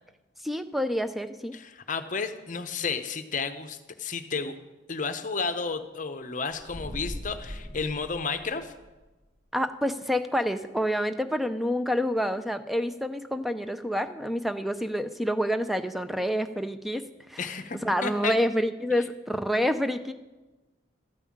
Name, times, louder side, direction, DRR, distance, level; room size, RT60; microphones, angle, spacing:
voice 1, 0.4-1.6 9.5-17.5 17.8-20.1, equal, ahead, 9 dB, 0.4 m, -28 dB
voice 2, 1.5-4.5 4.9-8.7 17.4-18.4, left 4 dB, 40° left, 9 dB, 0.7 m, -32 dB
sound 1, 6.6-9.0, equal, 35° right, 1.2 m, -40 dB
13.5 x 5.5 x 8.5 m, 1.2 s
head